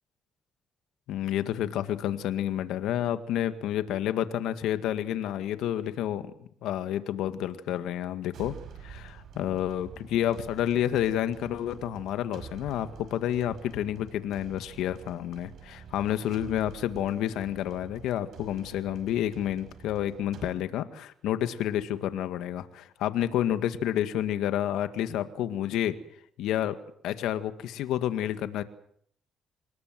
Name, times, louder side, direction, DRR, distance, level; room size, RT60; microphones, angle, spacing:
voice 1, 1.1-6.3 6.6-8.5 8.8-26.0 26.4-26.8 27.0-28.6, left 11 dB, 90° left, 11 dB, 2.0 m, -29 dB
sound 1, 8.3-20.5, right 6 dB, 70° right, 5.6 m, -48 dB
27.0 x 21.5 x 7.7 m, 0.64 s
cardioid pair, 90°, 0 cm